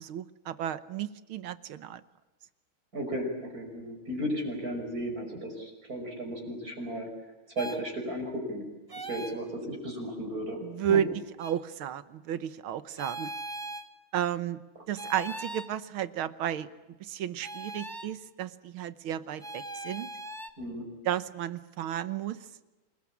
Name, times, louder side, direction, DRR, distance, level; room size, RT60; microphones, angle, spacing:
voice 1, 0.0-2.0 10.6-11.1 11.4-13.3 14.1-14.6 14.9-16.7 17.0-20.1 21.1-22.4, right 10 dB, 80° right, 14 dB, 1.9 m, -32 dB
voice 2, 2.9-7.1 7.6-8.7 9.1-10.6 10.9-11.0 20.6-20.9, equal, 45° right, 2 dB, 6.1 m, -34 dB
sound 1, 7.6-7.8 8.9-9.4 11.4-11.6 13.0-13.9 15.0-15.7 17.4-18.1 19.4-20.5, right 1 dB, 15° right, 0.9 m, -39 dB
27.5 x 20.0 x 8.6 m, 1.1 s
omnidirectional pair, 2.3 m